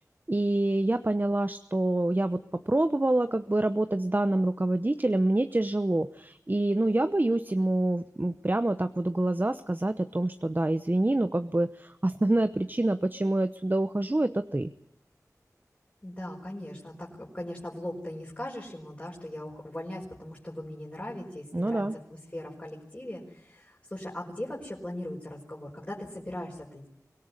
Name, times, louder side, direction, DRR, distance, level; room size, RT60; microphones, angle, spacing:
voice 1, 0.3-14.7 21.5-22.0, right 1 dB, 30° right, 11 dB, 0.9 m, -26 dB
voice 2, 16.0-21.9 22.3-26.9, left 1 dB, 25° left, -3 dB, 5.1 m, -39 dB
24.0 x 17.5 x 9.8 m, 0.73 s
wide cardioid pair, 55°, 6 cm